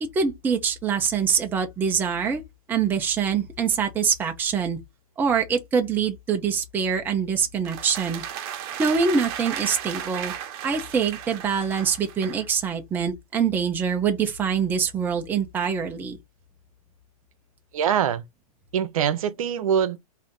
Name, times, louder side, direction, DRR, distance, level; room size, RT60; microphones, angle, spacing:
voice 1, 0.0-2.4 2.7-4.8 5.2-8.2 8.8-10.3 10.6-16.2, right 6 dB, 10° right, 0.6 m, -24 dB
sound 1, 7.6-12.5, right 10 dB, 35° right, 1.1 m, -35 dB
voice 2, 17.7-18.2 18.7-20.0, right 8 dB, 60° right, 0.8 m, -23 dB
3.9 x 2.8 x 3.6 m
hypercardioid pair, 150°, 20 cm